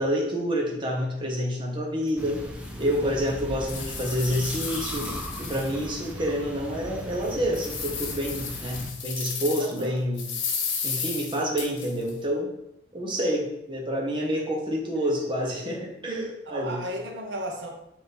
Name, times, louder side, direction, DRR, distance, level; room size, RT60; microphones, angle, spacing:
voice 1, 0.0-2.5 2.8-10.3 10.8-12.5 12.9-16.8, equal, 25° right, -1 dB, 1.0 m, -28 dB
sound 1, 2.0-2.1 2.6-2.7 3.3-6.1 6.5-6.6 7.1-9.9 10.2-12.1, left 6 dB, 90° left, 1.1 m, -33 dB
sound 2, 2.2-8.9, equal, 5° right, 0.6 m, -37 dB
voice 2, 3.0-3.3 9.6-9.9 16.5-17.7, equal, 65° right, 1 dB, 0.9 m, -35 dB
6.7 x 2.8 x 5.3 m, 0.84 s
head